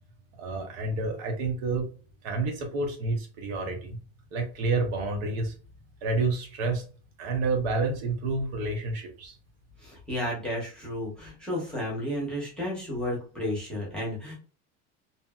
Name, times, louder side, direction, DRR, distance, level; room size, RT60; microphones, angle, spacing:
voice 1, 0.4-1.9 2.2-4.0 4.3-5.5 6.0-6.9 7.2-9.4, right 3 dB, 65° right, 3 dB, 0.9 m, -29 dB
voice 2, 9.8-14.3, left 1 dB, ahead, -5 dB, 0.9 m, -32 dB
2.7 x 2.5 x 2.2 m, 0.40 s
cardioid pair, 170°, 35 cm